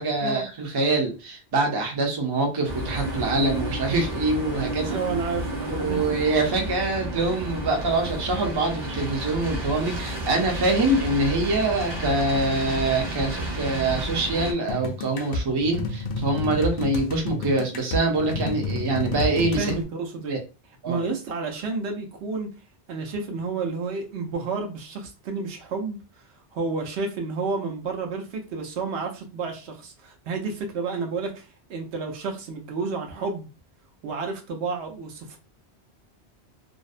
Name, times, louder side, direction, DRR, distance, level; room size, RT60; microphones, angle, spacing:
voice 1, 0.0-5.0 5.6-19.7 20.3-20.4 20.8-21.0, right 2 dB, 35° right, 0.4 m, -25 dB
sound 1, 2.7-14.5, right 1 dB, 55° right, 0.9 m, -31 dB
voice 2, 4.9-6.0 19.6-20.4 20.9-22.5 22.9-26.0 26.5-33.5 34.0-35.4, right 4 dB, 80° right, 0.9 m, -30 dB
sound 2, 14.7-19.8, left 3 dB, 60° left, 0.6 m, -30 dB
2.5 x 2.0 x 2.4 m
omnidirectional pair, 1.1 m